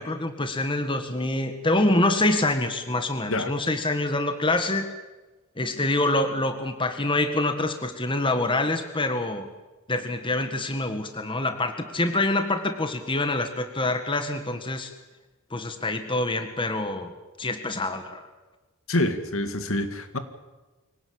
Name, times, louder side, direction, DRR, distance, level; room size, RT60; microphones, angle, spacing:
voice 1, 0.0-4.9 5.6-9.5 9.9-14.9 15.5-17.1 17.4-18.3, left 2 dB, 20° left, 7 dB, 1.7 m, -26 dB
voice 2, 18.9-20.2, left 1 dB, 60° left, 9 dB, 2.1 m, -26 dB
25.0 x 17.5 x 8.7 m, 1.2 s
head